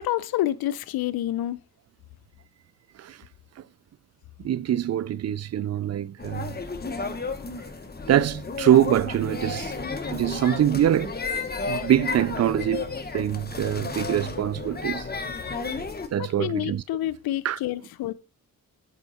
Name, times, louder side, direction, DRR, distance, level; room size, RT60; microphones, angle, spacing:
voice 1, 0.0-1.6 16.2-18.1, left 13 dB, 80° left, 0.6 m, -28 dB
voice 2, 4.4-6.5 8.1-9.7 10.1-11.1 11.7-15.1 16.1-16.8 17.4-17.6, right 11 dB, 45° right, 0.4 m, -24 dB
sound 1, 6.2-16.1, left 4 dB, 25° left, 1.4 m, -33 dB
8.1 x 5.5 x 4.2 m
cardioid pair, 60°, 36 cm